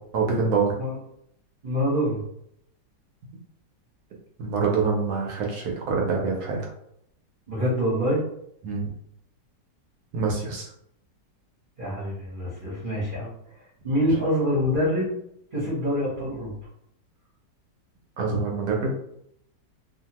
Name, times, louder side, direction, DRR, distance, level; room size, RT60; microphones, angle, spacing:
voice 1, 0.1-0.7 4.4-6.6 8.6-8.8 10.1-10.7 18.2-18.9, right 4 dB, 70° right, 0 dB, 1.1 m, -25 dB
voice 2, 1.6-2.2 7.5-8.2 11.8-13.3 13.8-15.1 15.5-16.5, equal, 40° right, -8 dB, 0.8 m, -25 dB
2.8 x 2.3 x 2.8 m, 0.72 s
omnidirectional pair, 1.9 m